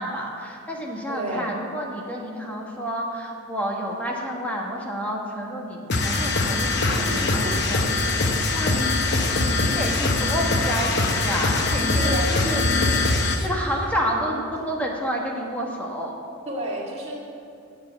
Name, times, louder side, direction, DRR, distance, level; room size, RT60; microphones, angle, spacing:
voice 1, 0.0-13.1 13.4-16.1, equal, 5° left, -1 dB, 1.4 m, -30 dB
voice 2, 1.1-1.5 6.9-7.6 11.9-12.5 16.5-17.2, right 1 dB, 30° right, -3 dB, 1.9 m, -31 dB
sound 1, 5.9-13.5, left 2 dB, 50° left, 0.9 m, -22 dB
8.3 x 7.6 x 8.5 m, 2.6 s
head